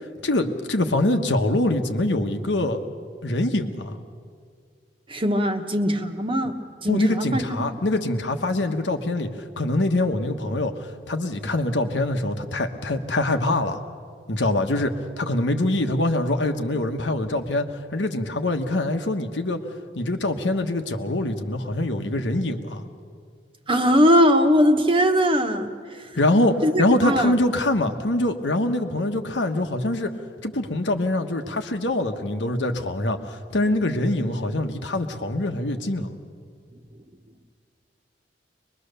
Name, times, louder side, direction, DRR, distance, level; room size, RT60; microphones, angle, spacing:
voice 1, 0.2-2.8 3.2-4.0 6.9-9.3 9.6-13.8 14.3-17.6 17.9-19.6 19.9-22.8 26.1-30.1 30.4-36.1, left 1 dB, 90° left, 5 dB, 1.3 m, -24 dB
voice 2, 5.1-7.4 23.7-25.7 26.0-26.1 26.6-27.3, equal, 30° right, 5 dB, 1.3 m, -20 dB
23.0 x 21.5 x 6.8 m, 2.1 s
head